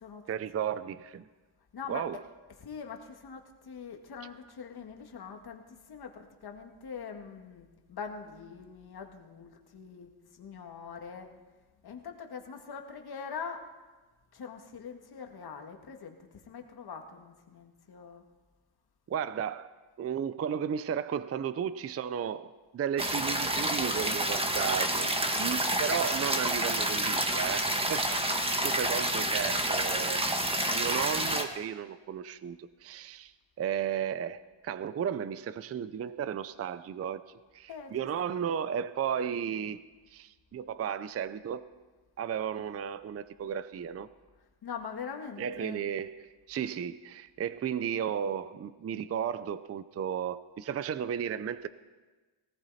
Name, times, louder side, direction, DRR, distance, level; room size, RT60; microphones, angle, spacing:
voice 1, 0.3-1.3 1.9-2.2 19.1-19.7 20.0-25.1 25.4-30.2 30.7-33.3 33.6-37.2 37.5-39.8 40.1-41.7 42.2-44.1 45.4-51.7, right 8 dB, 30° right, 0.5 m, -34 dB
voice 2, 1.7-2.0 2.6-5.6 5.9-11.3 11.8-13.7 14.3-18.2 37.7-37.9 38.3-38.4 44.6-45.8, left 6 dB, 50° left, 1.9 m, -43 dB
sound 1, 23.0-31.4, right 1 dB, 10° right, 1.5 m, -29 dB
19.0 x 18.0 x 4.2 m
cardioid pair, 115°, 49 cm